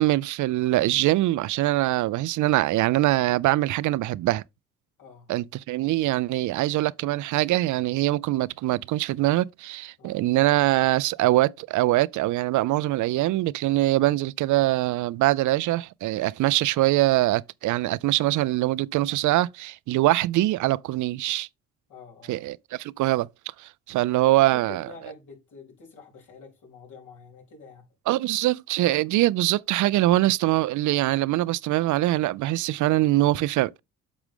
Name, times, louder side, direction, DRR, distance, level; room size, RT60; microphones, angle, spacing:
voice 1, 0.0-4.4 5.3-21.5 22.3-23.3 23.6-24.9 28.1-33.7, right 16 dB, 75° right, 0.5 m, -23 dB
voice 2, 5.0-5.3 10.0-10.2 19.9-20.1 21.9-22.4 24.5-27.9, left 4 dB, 75° left, 3.7 m, -47 dB
8.4 x 6.1 x 3.6 m
cardioid pair, 90°, 30 cm